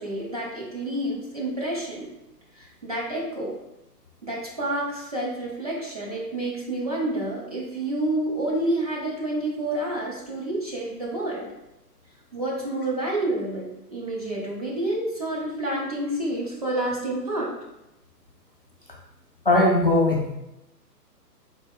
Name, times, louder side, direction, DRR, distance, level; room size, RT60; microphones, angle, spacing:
voice 1, 0.0-2.1 2.5-3.5 4.2-11.5 12.3-17.5, right 1 dB, 25° right, -4 dB, 0.5 m, -29 dB
voice 2, 19.5-20.3, left 1 dB, 40° left, -2 dB, 0.4 m, -19 dB
4.1 x 2.3 x 3.5 m, 0.90 s
figure-of-eight pair, 130°, 49 cm